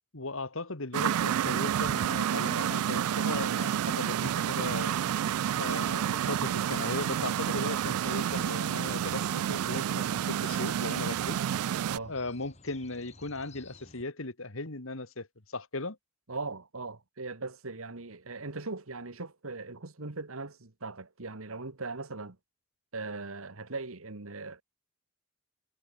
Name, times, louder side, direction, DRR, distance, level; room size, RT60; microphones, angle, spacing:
voice 1, 0.1-5.0 5.5-11.4 12.1-16.0, left 2 dB, 65° left, 2.1 m, -37 dB
sound 1, 0.9-12.0, right 9 dB, 90° right, 0.3 m, -29 dB
sound 2, 4.7-14.1, left 1 dB, 30° left, 5.5 m, -55 dB
voice 2, 16.3-22.4 22.9-24.6, right 3 dB, 75° right, 1.7 m, -39 dB
head